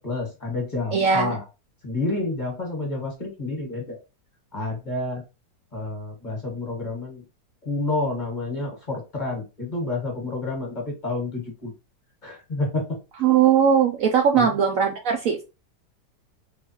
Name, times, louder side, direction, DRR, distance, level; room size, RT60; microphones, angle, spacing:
voice 1, 0.0-1.4 1.8-4.0 4.5-5.2 5.7-7.2 7.6-11.7 12.2-13.0 14.3-14.5, left 2 dB, 30° left, 0 dB, 1.3 m, -29 dB
voice 2, 0.9-1.3 13.2-15.4, right 7 dB, 65° right, 3 dB, 0.9 m, -19 dB
3.9 x 3.4 x 2.9 m, 0.28 s
omnidirectional pair, 1.8 m